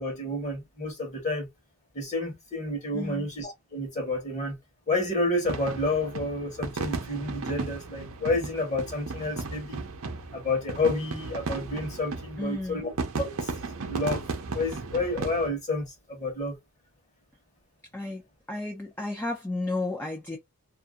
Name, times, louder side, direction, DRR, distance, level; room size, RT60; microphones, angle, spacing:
voice 1, 0.0-1.5 1.9-4.6 4.9-9.8 10.3-12.9 13.2-13.5 13.8-14.2 14.5-16.6, left 2 dB, 30° left, 1.1 m, -30 dB
voice 2, 2.9-3.3 12.4-12.8 17.9-18.2 18.5-20.4, left 2 dB, 10° left, 0.5 m, -32 dB
sound 1, 5.4-15.5, right 3 dB, 65° right, 0.7 m, -35 dB
2.7 x 2.5 x 2.4 m
head